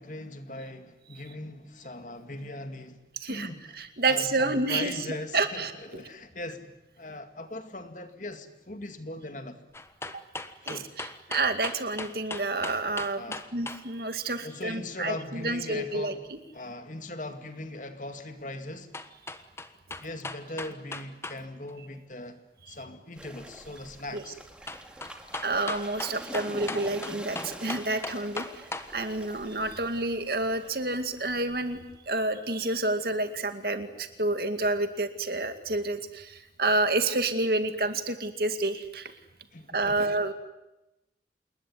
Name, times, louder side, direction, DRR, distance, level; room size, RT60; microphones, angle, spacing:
voice 1, 0.0-3.0 3.3-3.8 4.1-9.6 10.6-10.9 13.2-13.5 14.4-16.2 16.5-18.9 20.0-22.4 22.7-24.4 39.5-40.1, left 2 dB, 45° left, 2.3 m, -40 dB
voice 2, 3.8-5.0 5.3-6.0 10.6-13.2 13.5-16.4 24.1-24.2 25.4-39.1 39.7-40.3, right 2 dB, 60° right, 2.4 m, -29 dB
sound 1, 9.7-13.8 18.9-21.4 21.7-21.8 24.7-28.9 29.3-29.4, left 2 dB, 15° left, 1.3 m, -37 dB
sound 2, 23.2-32.1, right 1 dB, 5° right, 2.3 m, -45 dB
28.0 x 21.0 x 9.7 m
head